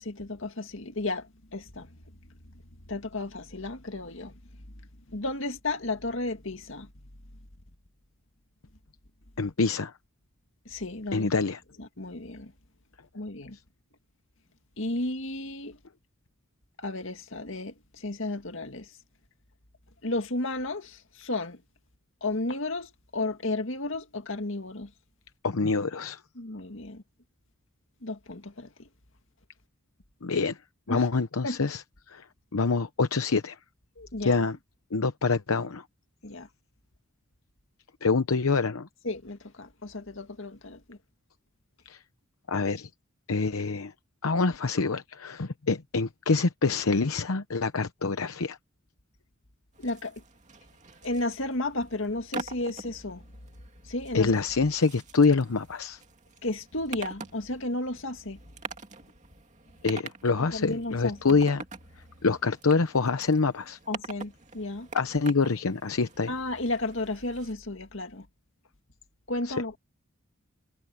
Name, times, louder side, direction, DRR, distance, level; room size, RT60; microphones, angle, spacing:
voice 1, 0.0-1.9 2.9-4.3 5.1-6.9 10.7-11.3 11.8-12.5 13.1-13.6 14.8-15.8 16.8-18.9 20.0-21.6 22.2-24.9 26.4-27.0 28.0-28.9 30.9-31.1 31.4-31.6 34.0-34.5 36.2-36.5 39.0-41.0 49.8-50.2 51.0-53.2 53.8-54.3 56.4-58.4 60.5-61.4 63.9-64.9 66.3-68.3 69.3-69.8, left 2 dB, 65° left, 2.1 m, -33 dB
voice 2, 9.4-9.9 11.1-11.6 25.4-26.2 30.2-30.6 30.9-32.2 32.5-33.6 34.2-34.6 34.9-35.8 38.0-38.9 41.9-42.0 42.5-42.9 43.3-43.9 44.2-48.6 54.1-56.0 59.8-61.6 62.2-63.8 64.9-66.3 69.4-69.6, left 4 dB, 80° left, 0.8 m, -26 dB
sound 1, 49.7-67.5, right 4 dB, 35° right, 2.5 m, -45 dB
head